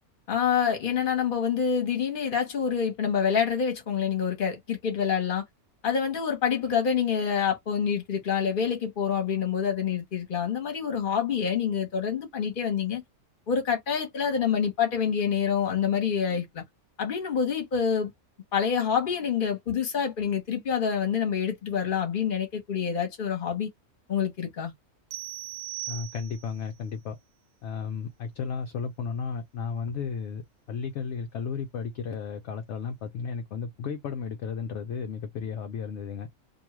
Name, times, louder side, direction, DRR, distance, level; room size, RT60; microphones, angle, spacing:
voice 1, 0.3-5.4 5.8-13.0 13.5-16.6 17.0-18.1 18.5-23.7 24.1-24.7, left 7 dB, 40° left, 1.1 m, -27 dB
sound 1, 25.1-26.6, right 17 dB, 65° right, 0.8 m, -38 dB
voice 2, 25.9-27.2 27.6-30.4 30.7-36.3, left 6 dB, 65° left, 0.8 m, -34 dB
2.6 x 2.3 x 2.9 m
omnidirectional pair, 1.4 m